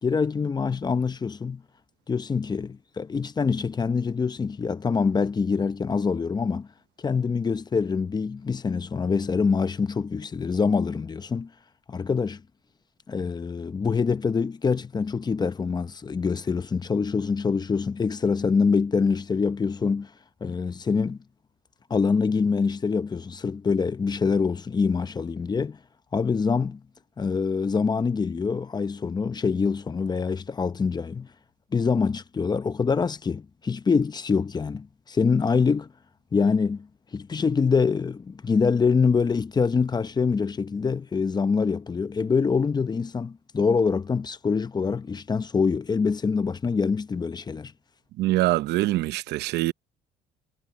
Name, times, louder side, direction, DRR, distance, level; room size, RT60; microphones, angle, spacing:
voice 1, 0.0-1.6 2.1-6.7 7.0-11.5 11.9-12.4 13.1-20.1 20.4-21.2 21.9-25.8 26.1-26.8 27.2-31.3 31.7-35.9 36.3-47.7, left 5 dB, 25° left, 0.8 m, -25 dB
voice 2, 48.2-49.7, right 17 dB, 80° right, 0.8 m, -24 dB
cardioid pair, 110°, 17 cm